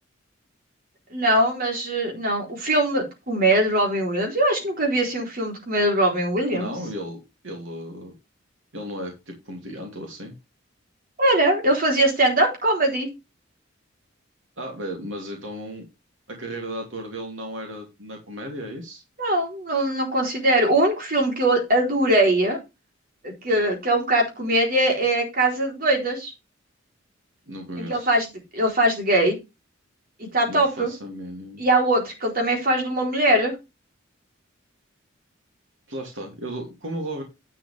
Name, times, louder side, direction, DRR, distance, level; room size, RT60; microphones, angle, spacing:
voice 1, 1.1-6.7 11.2-13.1 19.2-22.6 23.2-26.3 27.8-28.3 28.5-29.4 30.3-30.9 31.6-33.6, right 1 dB, 45° right, 4.0 m, -21 dB
voice 2, 6.5-7.2 7.4-8.1 8.7-10.3 14.6-15.8 16.3-19.0 27.5-28.1 30.5-31.6 35.9-37.2, right 1 dB, 70° right, 3.0 m, -35 dB
10.5 x 7.6 x 3.5 m
head